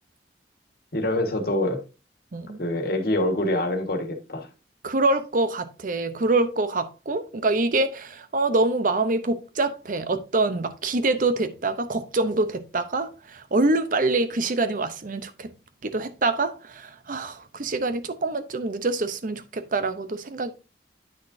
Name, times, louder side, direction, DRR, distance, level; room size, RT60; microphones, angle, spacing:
voice 1, 0.9-1.8 2.6-4.5, left 1 dB, 60° left, 1.6 m, -25 dB
voice 2, 4.8-15.5 15.8-20.5, right 2 dB, 50° right, 0.7 m, -25 dB
9.6 x 6.4 x 2.7 m
head